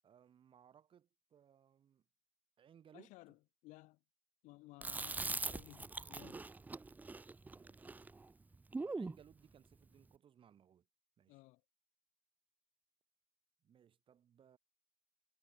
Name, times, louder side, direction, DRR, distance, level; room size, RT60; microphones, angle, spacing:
voice 1, 0.0-2.0 2.6-3.1 5.0-5.4 7.5-7.9 8.7-10.9 11.2-11.4 13.6-14.6, right 8 dB, 35° right, 2.7 m, -64 dB
voice 2, 2.9-4.0 4.4-6.4 11.3-11.6, left 21 dB, 55° left, 1.0 m, -58 dB
Chewing mastication, 4.8-9.2, right 3 dB, 10° right, 0.6 m, -43 dB
hypercardioid pair, 80°, 16 cm